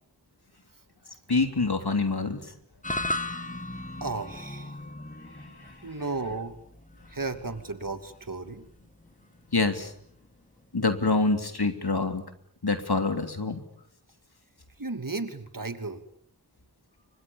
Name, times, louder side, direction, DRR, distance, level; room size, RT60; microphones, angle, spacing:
voice 1, 1.3-2.5 5.6-5.7 9.5-9.9 10.7-12.2 12.6-13.6, left 3 dB, 75° left, 7 dB, 3.4 m, -26 dB
sound 1, 2.8-11.2, left 1 dB, 20° left, 2.4 m, -38 dB
voice 2, 4.0-4.8 5.8-6.6 7.1-8.7 14.8-16.0, right 3 dB, 55° right, 9 dB, 2.9 m, -34 dB
30.0 x 25.5 x 7.3 m, 0.65 s
wide cardioid pair, 45°, 39 cm